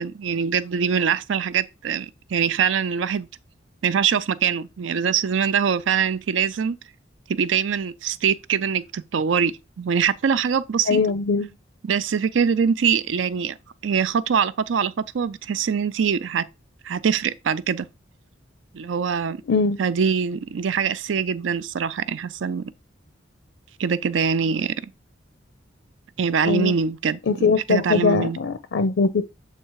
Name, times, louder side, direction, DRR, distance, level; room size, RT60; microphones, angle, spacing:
voice 1, 0.0-3.3 3.8-6.8 7.3-11.0 11.8-13.6 13.8-16.4 16.8-17.9 18.7-19.4 19.8-22.7 23.8-24.7 26.2-28.4, right 6 dB, 80° right, 0.4 m, -23 dB
voice 2, 10.9-11.5 19.5-19.8 26.5-26.7 27.3-29.2, left 4 dB, 75° left, 0.5 m, -21 dB
7.5 x 3.2 x 4.6 m
head